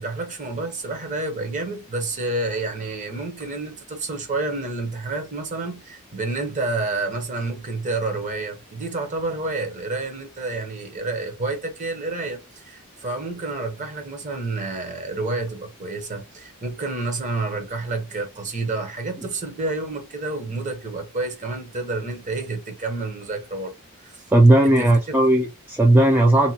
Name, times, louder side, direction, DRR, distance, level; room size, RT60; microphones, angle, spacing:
voice 1, 0.0-24.2 24.6-24.9, right 3 dB, 35° right, 0.8 m, -29 dB
voice 2, 24.3-26.5, right 1 dB, 10° right, 0.3 m, -16 dB
2.8 x 2.2 x 2.7 m
head